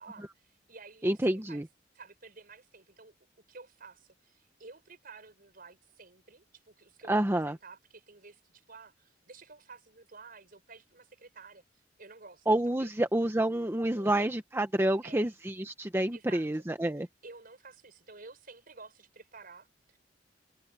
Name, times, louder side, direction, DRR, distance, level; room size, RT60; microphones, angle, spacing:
voice 1, 0.0-1.6 1.9-3.1 3.5-11.6 12.0-12.5 12.8-12.9 13.9-14.3 15.0-15.3 16.1-16.5 17.2-20.0, right 4 dB, 55° right, 5.6 m, -52 dB
voice 2, 1.0-1.7 7.1-7.6 12.5-17.1, right 1 dB, 15° right, 0.9 m, -28 dB
head